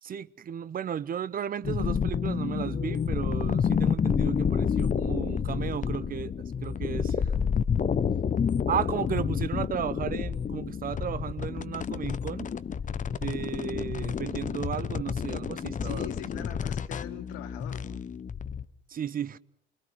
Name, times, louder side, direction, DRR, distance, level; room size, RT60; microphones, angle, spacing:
voice 1, 0.0-6.3 6.6-7.6 8.7-12.5 13.1-16.1 16.4-16.5 18.9-19.4, right 9 dB, 25° right, 0.9 m, -34 dB
sound 1, 1.6-18.6, left 7 dB, 25° left, 1.0 m, -29 dB
voice 2, 15.8-18.0, left 13 dB, 60° left, 2.1 m, -42 dB
28.0 x 23.5 x 6.1 m
figure-of-eight pair, 70°, 33 cm